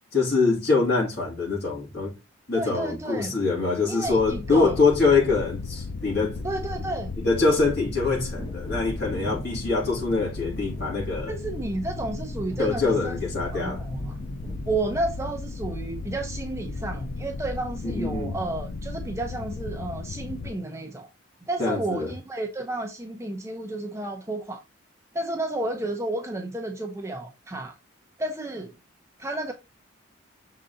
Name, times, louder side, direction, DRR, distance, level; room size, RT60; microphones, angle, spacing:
voice 1, 0.1-2.1 2.5-6.4 7.2-11.3 12.6-13.8 17.8-18.3 21.6-22.1, left 4 dB, 55° left, 2.4 m, -24 dB
voice 2, 2.5-3.4 3.9-4.8 6.4-7.2 11.3-13.2 13.5-14.2 14.6-21.1 21.5-24.6 25.1-27.7 28.2-28.7 29.2-29.5, right 2 dB, 15° right, 0.6 m, -31 dB
sound 1, 4.1-20.5, left 3 dB, 80° left, 0.5 m, -36 dB
Wind / Thunder, 8.1-16.4 16.6-16.7, right 1 dB, 20° left, 1.9 m, -41 dB
6.5 x 3.9 x 3.9 m
head